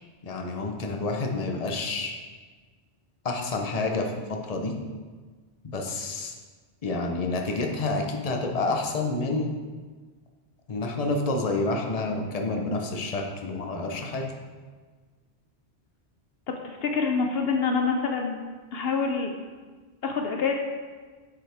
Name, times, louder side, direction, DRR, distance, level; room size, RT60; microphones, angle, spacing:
voice 1, 0.2-2.1 3.2-4.7 5.6-6.3 6.8-9.5 10.7-14.2, left 3 dB, 40° left, 2 dB, 0.9 m, -29 dB
voice 2, 16.6-18.4 18.7-19.3 20.0-20.5, left 5 dB, 70° left, 3 dB, 0.8 m, -26 dB
7.8 x 7.0 x 3.5 m, 1.4 s
omnidirectional pair, 1.1 m